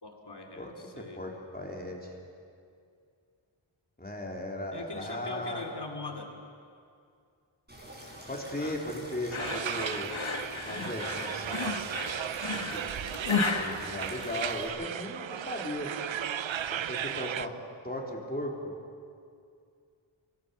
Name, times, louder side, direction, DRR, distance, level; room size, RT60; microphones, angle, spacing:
voice 1, 0.0-1.2 4.7-6.3 8.6-8.8 12.7-13.0, left 3 dB, 55° left, 3 dB, 2.8 m, -42 dB
voice 2, 0.6-2.1 4.0-5.6 8.3-10.2 10.7-11.8 12.1-15.9 16.7-17.6 17.8-18.8, left 1 dB, 20° left, 0 dB, 3.5 m, -37 dB
sound 1, 7.7-14.7, equal, 20° right, 5.7 m, -47 dB
sound 2, 9.3-14.8, left 4 dB, 70° left, 1.8 m, -33 dB
sound 3, 9.4-17.5, right 9 dB, 65° right, 0.6 m, -36 dB
24.0 x 16.5 x 7.0 m, 2.4 s
wide cardioid pair, 50°, 49 cm